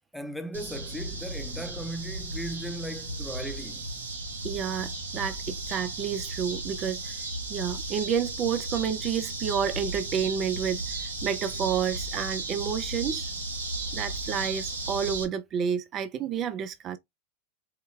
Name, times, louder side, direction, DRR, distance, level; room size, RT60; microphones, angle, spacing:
voice 1, 0.1-3.9, right 1 dB, ahead, 0.7 m, -37 dB
sound 1, 0.5-15.2, right 2 dB, 85° right, 1.1 m, -35 dB
voice 2, 4.4-7.2 7.5-13.3 13.9-17.0, right 8 dB, 40° right, 0.4 m, -30 dB
4.7 x 2.2 x 3.1 m
hypercardioid pair, 95°, 0 cm